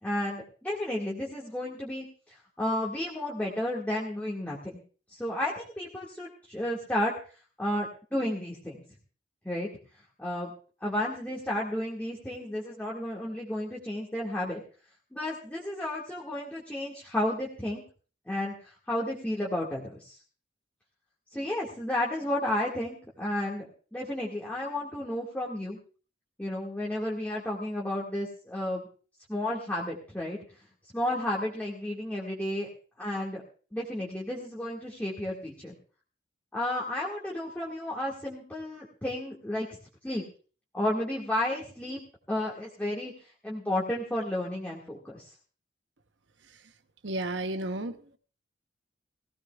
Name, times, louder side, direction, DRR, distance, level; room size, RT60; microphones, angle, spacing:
voice 1, 0.0-4.8 5.1-7.1 7.6-8.8 9.4-9.7 10.2-10.5 10.8-14.6 15.1-17.8 18.3-20.2 21.3-23.6 23.9-25.8 26.4-28.9 29.3-30.4 30.9-32.7 33.0-33.4 33.7-35.7 36.5-39.8 40.0-40.2 40.7-42.0 42.3-43.1 43.4-45.3, left 1 dB, 10° left, -5 dB, 1.9 m, -32 dB
voice 2, 47.0-48.2, right 2 dB, 70° right, 9 dB, 1.0 m, -33 dB
20.0 x 16.0 x 2.3 m, 0.39 s
head